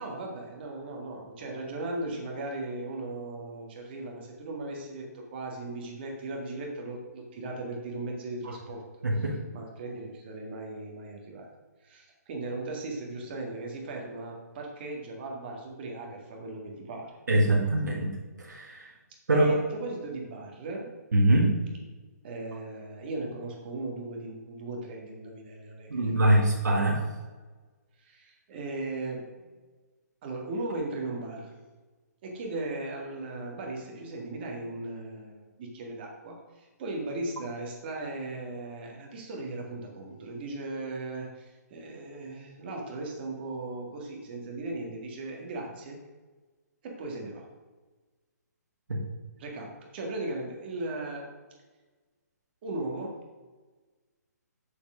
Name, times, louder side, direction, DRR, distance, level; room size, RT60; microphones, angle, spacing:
voice 1, 0.0-8.8 9.5-11.5 11.8-17.2 17.5-17.6 19.3-21.0 22.2-26.6 28.0-29.5 30.2-31.5 32.2-46.0 46.8-47.5 49.4-51.3 52.6-53.2, right 2 dB, 35° right, 1 dB, 1.8 m, -37 dB
voice 2, 9.0-9.4 17.3-18.1 18.4-18.9 19.3-19.5 21.1-21.5 25.9-27.0 48.9-49.0, right 1 dB, 85° right, -1 dB, 1.8 m, -23 dB
6.8 x 5.1 x 6.2 m, 1.3 s
hypercardioid pair, 155°, 9 cm